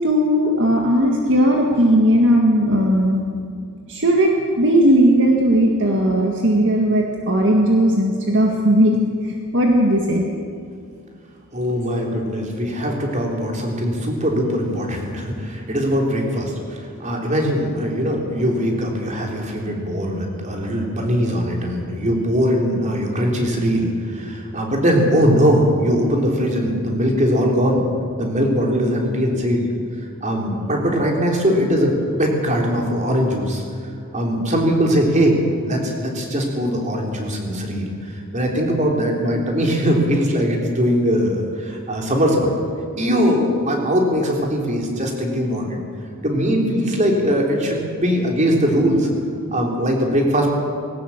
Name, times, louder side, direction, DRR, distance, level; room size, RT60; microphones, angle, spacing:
voice 1, 0.0-3.2 3.9-10.3, equal, 55° right, 0 dB, 1.8 m, -17 dB
voice 2, 11.5-27.8 28.2-29.7 30.2-33.6 34.1-42.5 43.0-45.8 46.2-49.1 49.5-50.5, equal, 35° right, 0 dB, 3.5 m, -20 dB
20.0 x 17.5 x 7.2 m, 2.3 s
head